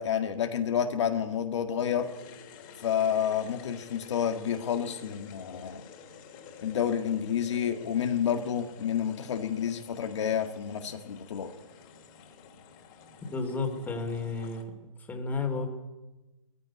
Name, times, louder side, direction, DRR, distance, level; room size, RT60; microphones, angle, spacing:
voice 1, 0.0-2.1 2.8-5.8 6.6-11.5, left 8 dB, 55° left, 5 dB, 1.9 m, -29 dB
sound 1, 1.9-14.6, left 7 dB, 35° left, 3.3 m, -50 dB
voice 2, 13.3-14.7 15.0-15.7, left 4 dB, 10° left, 4 dB, 2.9 m, -32 dB
18.5 x 15.0 x 9.7 m, 1.1 s
hypercardioid pair, 140°, 17 cm